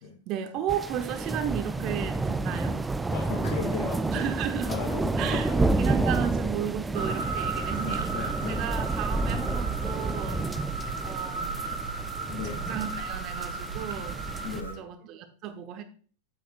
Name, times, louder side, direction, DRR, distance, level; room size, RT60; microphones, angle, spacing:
voice 1, 0.3-2.9 4.1-4.7 5.2-10.5 11.0-11.6 12.3-12.4 12.7-14.2 14.5-15.8, right 9 dB, 40° right, 8 dB, 1.0 m, -34 dB
sound 1, 0.7-14.6, right 3 dB, 10° right, 0.4 m, -30 dB
voice 2, 3.1-4.3 4.7-6.1 7.8-8.6 12.3-12.6 14.4-14.8, left 7 dB, 50° left, 2 dB, 1.1 m, -36 dB
sound 2, 6.9-14.7, right 4 dB, 70° right, 2.3 m, -35 dB
9.2 x 8.2 x 2.5 m, 0.41 s
figure-of-eight pair, 90°, 0 cm